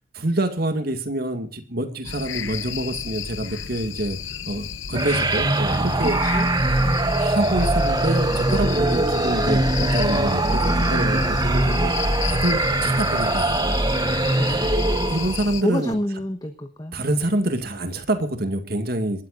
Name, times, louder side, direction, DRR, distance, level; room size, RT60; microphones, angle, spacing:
voice 1, 0.2-4.2 4.4-6.2 7.2-11.9 12.2-13.6 15.1-16.0 16.9-19.3, right 1 dB, 50° right, 8 dB, 2.1 m, -26 dB
sound 1, 2.0-15.6, left 6 dB, 70° left, 1.0 m, -32 dB
sound 2, 4.9-15.5, right 2 dB, 20° right, 0.9 m, -22 dB
voice 2, 6.0-6.5 6.8-7.1 14.1-14.7 15.6-16.9, equal, 20° left, 5 dB, 1.2 m, -29 dB
27.5 x 13.5 x 2.6 m, 0.35 s
head